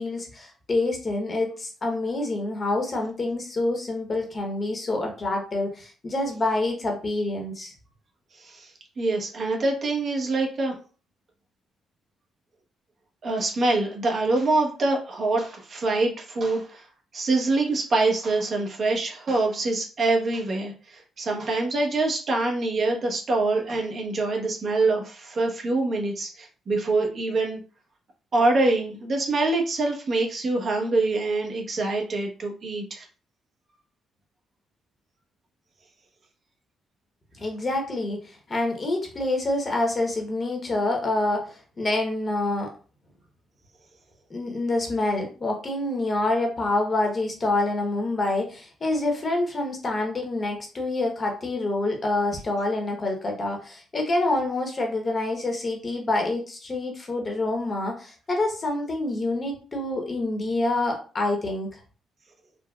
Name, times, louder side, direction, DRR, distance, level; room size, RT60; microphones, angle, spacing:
voice 1, 0.0-7.7 37.4-42.7 44.3-61.7, left 2 dB, 35° left, 2 dB, 0.9 m, -27 dB
voice 2, 9.0-10.7 13.2-16.8 17.1-27.6 28.3-33.0, right 2 dB, 50° right, 1 dB, 0.9 m, -25 dB
3.8 x 2.1 x 2.3 m, 0.37 s
cardioid pair, 90°, 0 cm